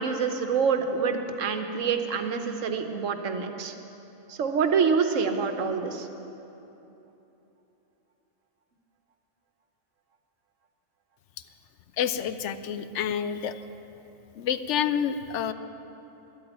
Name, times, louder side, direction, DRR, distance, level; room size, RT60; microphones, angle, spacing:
voice 1, 0.0-3.7 4.3-6.1, right 5 dB, 80° right, 7 dB, 1.3 m, -26 dB
voice 2, 12.0-13.5 14.4-15.5, left 8 dB, 70° left, 12 dB, 0.8 m, -28 dB
12.0 x 8.5 x 9.0 m, 3.0 s
omnidirectional pair, 1.3 m